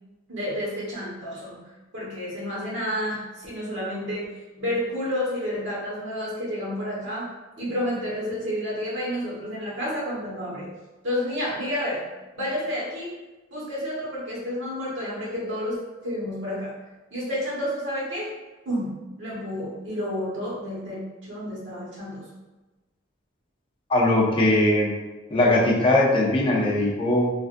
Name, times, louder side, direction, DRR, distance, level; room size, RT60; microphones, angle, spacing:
voice 1, 0.3-1.6 1.9-4.3 4.6-7.3 7.6-10.7 11.0-12.0 12.3-13.1 13.5-15.7 16.0-16.7 17.1-18.3 18.6-18.9 19.2-22.2, equal, 80° right, -7 dB, 1.2 m, -30 dB
voice 2, 23.9-24.9 25.3-27.3, left 1 dB, 30° left, -3 dB, 0.6 m, -20 dB
3.3 x 2.5 x 2.5 m, 1.2 s
head